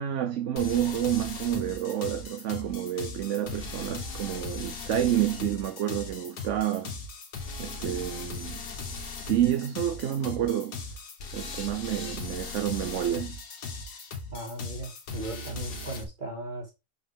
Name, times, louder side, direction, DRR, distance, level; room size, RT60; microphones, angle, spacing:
voice 1, 0.0-6.9 7.6-8.6 9.2-10.8 11.3-13.4, right 11 dB, 60° right, 0.9 m, -29 dB
sound 1, 0.6-16.0, left 4 dB, 85° left, 2.1 m, -38 dB
voice 2, 14.3-16.7, right 1 dB, 30° right, 2.8 m, -37 dB
7.4 x 5.9 x 3.6 m
omnidirectional pair, 1.6 m